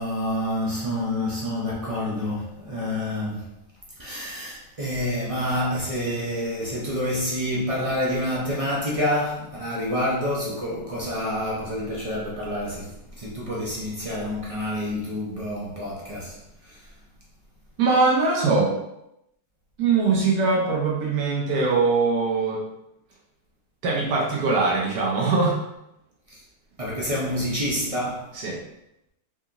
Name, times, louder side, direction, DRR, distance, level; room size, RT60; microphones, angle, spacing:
voice 1, 0.0-3.4 4.0-12.9 13.2-16.3 26.8-28.2, left 1 dB, 45° right, -5 dB, 0.4 m, -28 dB
voice 2, 17.8-18.7 19.8-22.6 23.8-25.6 28.3-28.6, right 4 dB, 85° right, -3 dB, 1.4 m, -22 dB
4.1 x 2.8 x 2.5 m, 0.83 s
omnidirectional pair, 1.6 m